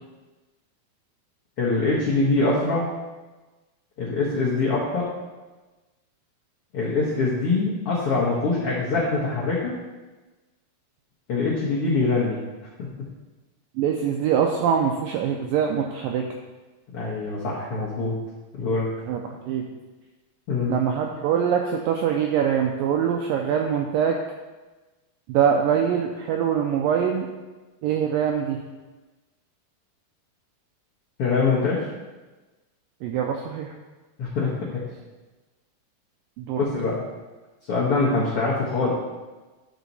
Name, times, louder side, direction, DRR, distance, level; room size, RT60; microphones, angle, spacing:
voice 1, 1.6-2.9 4.0-5.1 6.7-9.7 11.3-12.4 16.9-18.1 18.6-18.9 20.5-20.8 31.2-31.8 34.2-34.8 36.6-37.0 37.7-38.9, left 3 dB, 85° left, -6 dB, 1.2 m, -23 dB
voice 2, 13.8-16.2 19.1-19.7 20.7-24.2 25.3-27.3 27.8-28.6 33.0-33.7 36.4-36.7, right 8 dB, 90° right, 2 dB, 2.0 m, -23 dB
11.0 x 4.4 x 4.0 m, 1.2 s
omnidirectional pair, 4.6 m